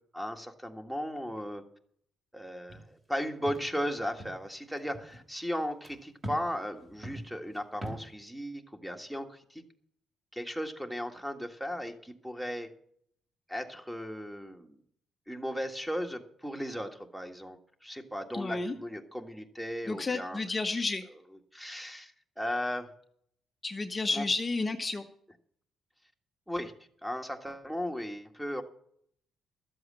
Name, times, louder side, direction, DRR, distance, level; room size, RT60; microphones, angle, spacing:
voice 1, 0.1-1.6 2.3-9.6 10.3-12.7 13.5-14.8 15.3-20.4 21.5-22.1 22.4-22.9 24.1-24.2 26.5-26.7 27.0-28.6, equal, 5° right, 5 dB, 1.7 m, -36 dB
sound 1, 2.7-3.2 3.4-3.7 4.0-4.5 4.8-5.2 5.8-6.0 6.2-6.5 6.8-8.1, right 1 dB, 30° right, 3.1 m, -42 dB
voice 2, 18.3-18.7 19.9-21.1 23.6-25.1, left 3 dB, 25° left, 4 dB, 1.0 m, -31 dB
13.0 x 7.8 x 7.5 m, 0.65 s
cardioid pair, 90°, 0 cm